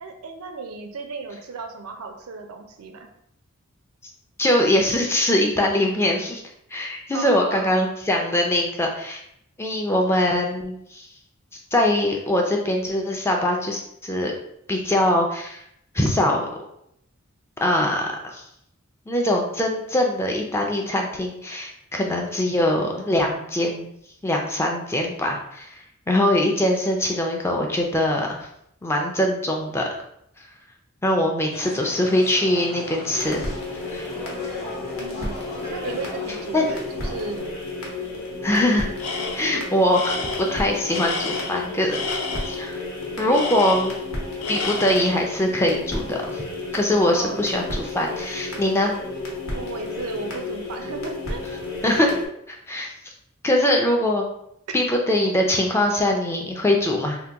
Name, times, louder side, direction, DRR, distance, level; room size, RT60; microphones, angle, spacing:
voice 1, 0.0-3.1 7.1-7.7 35.0-35.4 35.7-37.5 47.1-47.5 49.5-51.4 54.7-54.8, right 4 dB, 80° right, 5 dB, 0.5 m, -34 dB
voice 2, 4.4-6.4 6.7-9.2 9.6-11.1 11.7-14.3 14.7-15.6 15.9-16.5 17.6-18.5 19.1-23.9 24.2-28.5 28.8-29.9 30.4-30.5 31.0-33.4 33.9-34.1 36.5-36.8 38.4-38.9 39.3-42.0 42.5-42.8 43.2-44.0 44.5-46.4 46.7-49.0 51.8-52.2 52.5-52.9 53.4-54.3 54.7-57.2, left 1 dB, 10° left, 1 dB, 0.3 m, -22 dB
sound 1, 31.5-37.4, left 1 dB, 30° left, 0.8 m, -38 dB
sound 2, 33.1-52.3, left 2 dB, 70° left, 0.8 m, -32 dB
Tools, 39.0-39.6 39.9-42.6 43.3-44.1 44.4-45.2, left 3 dB, 85° left, 0.5 m, -30 dB
2.8 x 2.1 x 3.4 m, 0.74 s
head